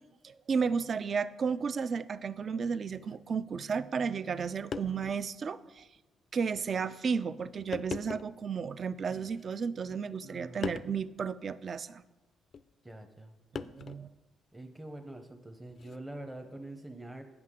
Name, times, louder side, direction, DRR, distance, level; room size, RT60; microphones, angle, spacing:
voice 1, 0.2-5.9 6.3-12.0 13.5-14.1, right 6 dB, 50° right, 15 dB, 0.3 m, -33 dB
sound 1, 3.0-3.2 4.3-4.4 4.7-5.2 5.8-5.9 6.8-7.0 7.7-8.4 9.3-9.9 10.6-11.0 12.5-12.7 13.6-14.1 15.7-16.0, left 6 dB, 50° left, 0.3 m, -40 dB
voice 2, 10.2-10.8 12.8-13.3 14.5-17.2, right 1 dB, 10° right, 4 dB, 0.6 m, -45 dB
9.4 x 5.6 x 3.7 m, 1.2 s
cardioid pair, 90°, 0 cm